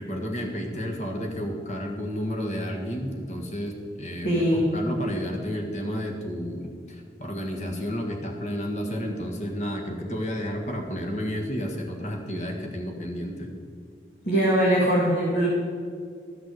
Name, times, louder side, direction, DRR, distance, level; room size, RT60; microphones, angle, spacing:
voice 1, 0.0-13.5, equal, 40° left, 2 dB, 1.7 m, -31 dB
voice 2, 4.2-4.7 14.2-15.5, equal, 60° left, -5 dB, 2.4 m, -21 dB
13.5 x 5.9 x 7.8 m, 2.1 s
head